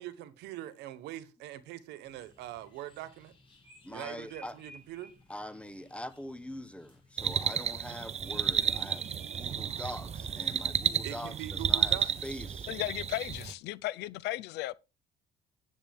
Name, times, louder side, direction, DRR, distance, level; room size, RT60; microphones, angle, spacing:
voice 1, 0.0-3.3 3.9-5.1 11.0-12.1, right 13 dB, 90° right, 1.2 m, -42 dB
sound 1, 2.0-12.5, left 1 dB, 30° left, 6.5 m, -59 dB
voice 2, 3.8-4.6 5.3-12.7, left 1 dB, 5° left, 1.1 m, -43 dB
sound 2, 7.2-13.5, right 8 dB, 40° right, 0.8 m, -32 dB
voice 3, 12.7-14.8, left 17 dB, 85° left, 0.6 m, -35 dB
10.0 x 8.1 x 3.6 m
cardioid pair, 110°, 17 cm